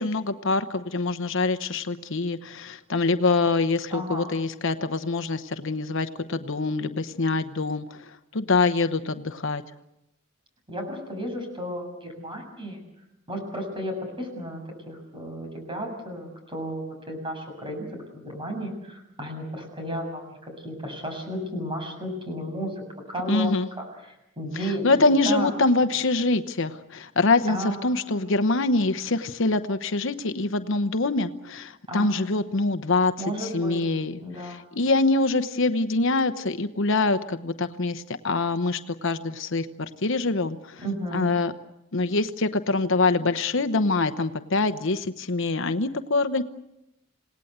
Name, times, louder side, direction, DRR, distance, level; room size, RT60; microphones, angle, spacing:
voice 1, 0.0-9.6 23.3-23.7 24.6-40.8 41.1-41.5 41.9-46.4, left 3 dB, 60° left, 10 dB, 1.0 m, -25 dB
voice 2, 3.9-4.3 10.7-12.8 13.3-14.6 14.9-17.9 18.1-22.8 23.1-23.8 24.4-24.8 25.3-25.5 27.5-28.3 31.9-32.4 33.2-33.8 34.2-34.6 40.8-41.3, equal, 25° right, 3 dB, 7.1 m, -33 dB
27.5 x 18.5 x 8.1 m, 0.89 s
head